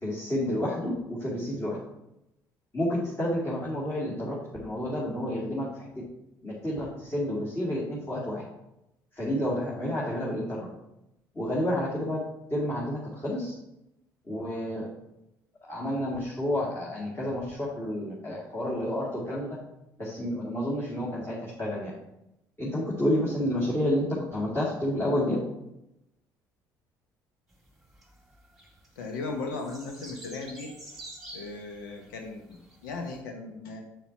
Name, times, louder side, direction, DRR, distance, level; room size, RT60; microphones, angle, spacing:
voice 1, 0.0-1.8 2.7-4.3 4.6-5.7 6.4-8.4 9.2-10.7 11.3-12.2 12.5-13.5 14.3-14.9 15.6-19.6 20.0-21.9 22.6-24.1 24.3-25.4, left 1 dB, 20° left, -7 dB, 2.5 m, -30 dB
sound 1, 27.5-33.2, right 1 dB, 5° right, 1.9 m, -48 dB
voice 2, 29.0-30.7 31.3-33.8, left 3 dB, 80° left, 3 dB, 0.9 m, -37 dB
7.5 x 6.9 x 2.9 m, 0.87 s
hypercardioid pair, 55°, 11 cm